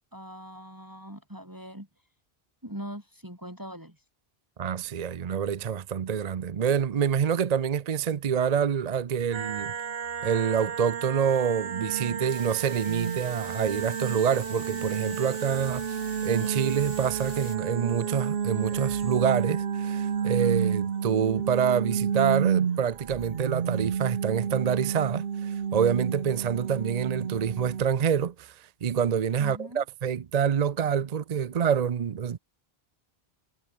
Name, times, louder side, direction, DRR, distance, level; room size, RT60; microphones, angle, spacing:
voice 1, 0.1-1.9 2.6-4.0 29.4-29.8, equal, 20° right, 5.6 m, -41 dB
voice 2, 4.6-9.7 10.2-16.0 16.2-32.4, right 7 dB, 45° right, 0.7 m, -27 dB
sound 1, 9.3-27.8, right 7 dB, 70° right, 1.2 m, -31 dB
sound 2, 12.3-17.6, left 2 dB, 90° left, 5.6 m, -48 dB
omnidirectional pair, 1.1 m